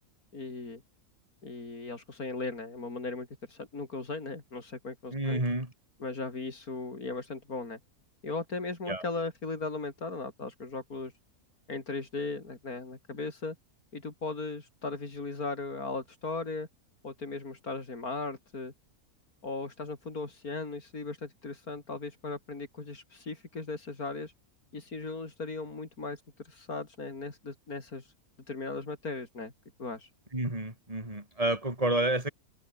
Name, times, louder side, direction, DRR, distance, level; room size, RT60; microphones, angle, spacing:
voice 1, 0.3-0.8 1.4-5.4 6.0-7.8 8.2-11.1 11.7-13.6 13.9-16.7 17.0-18.7 19.4-24.3 24.7-28.1 28.5-29.5 29.8-30.1, left 3 dB, 75° left, 4.5 m, -37 dB
voice 2, 5.1-5.7 8.9-9.0 30.3-32.3, right 1 dB, 25° right, 4.9 m, -29 dB
omnidirectional pair, 1.6 m